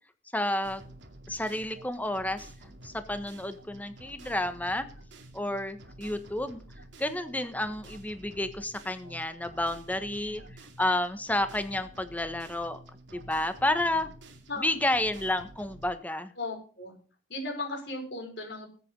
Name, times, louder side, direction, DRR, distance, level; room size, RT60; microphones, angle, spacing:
voice 1, 0.3-0.8 1.3-2.5 2.8-4.9 5.3-6.6 7.0-10.4 10.8-12.8 13.1-14.1 14.6-16.3, left 1 dB, 10° left, 9 dB, 1.3 m, -30 dB
sound 1, 0.6-15.9, right 1 dB, 85° right, 2.5 m, -50 dB
voice 2, 10.0-10.4 14.5-14.8 16.4-16.9 17.3-18.7, left 2 dB, 65° left, 2 dB, 5.4 m, -37 dB
20.0 x 8.5 x 3.9 m, 0.39 s
head